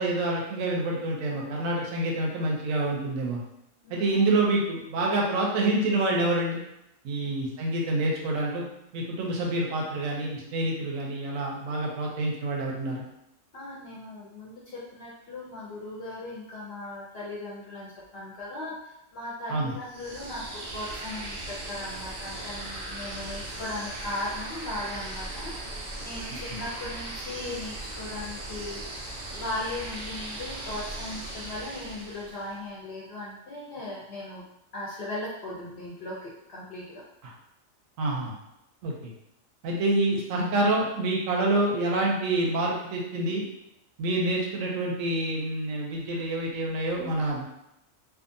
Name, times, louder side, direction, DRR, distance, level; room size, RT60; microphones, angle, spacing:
voice 1, 0.0-3.4 3.9-6.6 7.0-8.6 8.9-13.0 19.5-19.7 38.0-38.3 38.8-39.1 39.6-43.4 44.0-47.4, right 2 dB, 85° right, -2 dB, 1.0 m, -27 dB
voice 2, 13.5-25.6 26.0-28.8 29.3-34.4 34.7-37.0, left 2 dB, 60° left, -5 dB, 0.7 m, -38 dB
sound 1, 19.8-32.6, right 2 dB, 60° right, 0.4 m, -38 dB
2.7 x 2.4 x 2.5 m, 0.84 s
omnidirectional pair, 1.4 m